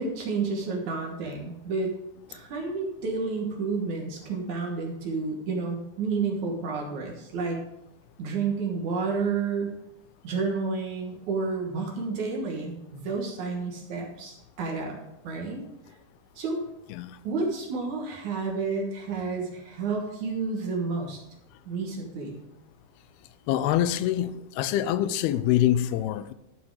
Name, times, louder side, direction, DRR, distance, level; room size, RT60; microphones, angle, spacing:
voice 1, 0.0-1.9 2.3-7.6 8.2-9.8 10.2-15.0 15.2-15.7 16.4-16.6 17.2-21.2 21.7-22.4, right 4 dB, 60° right, 2.4 m, -30 dB
voice 2, 23.5-26.3, left 12 dB, 90° left, 2.6 m, -25 dB
11.5 x 6.0 x 4.8 m
omnidirectional pair, 4.4 m